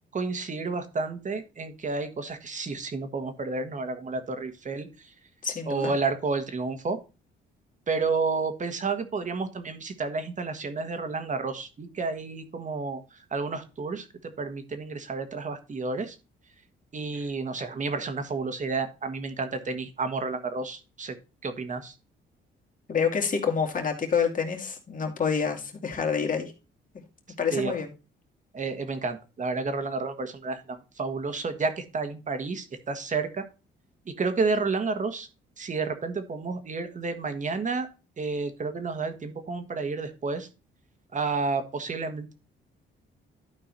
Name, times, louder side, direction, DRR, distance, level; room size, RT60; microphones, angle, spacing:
voice 1, 0.1-4.9 5.7-7.0 7.9-13.0 13.3-16.2 16.9-21.2 21.4-21.9 27.5-27.8 28.5-33.4 34.1-35.3 35.6-37.9 38.2-40.5 41.1-42.3, right 4 dB, 40° right, 8 dB, 1.6 m, -31 dB
voice 2, 5.4-5.9 17.1-17.2 22.9-26.5 27.4-27.9, left 6 dB, 40° left, 3 dB, 2.5 m, -27 dB
12.0 x 4.5 x 4.2 m, 0.30 s
cardioid pair, 90°, 20 cm